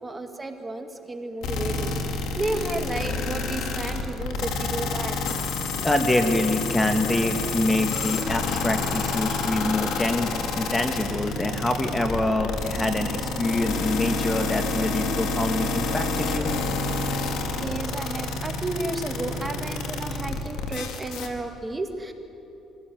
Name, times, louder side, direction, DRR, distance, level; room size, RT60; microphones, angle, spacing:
voice 1, 0.0-5.2 5.8-5.9 17.2-22.1, right 2 dB, 20° right, 5 dB, 1.9 m, -32 dB
sound 1, 1.4-21.3, left 3 dB, 75° left, 2.3 m, -28 dB
voice 2, 5.8-16.5, left 1 dB, 15° left, 6 dB, 1.7 m, -25 dB
23.0 x 16.5 x 9.3 m, 3.0 s
cardioid pair, 90°, 0 cm